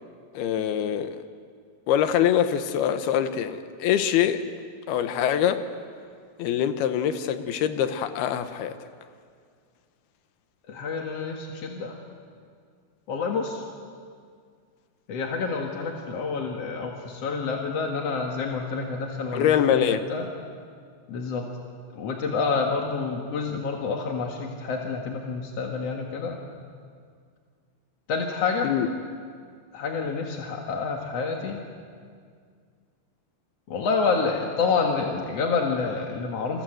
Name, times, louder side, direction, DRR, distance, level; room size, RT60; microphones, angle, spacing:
voice 1, 0.3-1.2 1.9-4.4 4.9-5.6 6.4-8.8 19.3-20.0 28.6-28.9, left 9 dB, 70° left, 10 dB, 2.7 m, -24 dB
voice 2, 10.7-12.0 13.1-13.6 15.1-20.3 21.1-21.5 22.0-26.4 28.1-28.7 29.7-31.6 33.7-36.6, left 4 dB, 55° left, 1 dB, 1.9 m, -28 dB
29.0 x 22.0 x 7.9 m, 2.1 s
omnidirectional pair, 5.0 m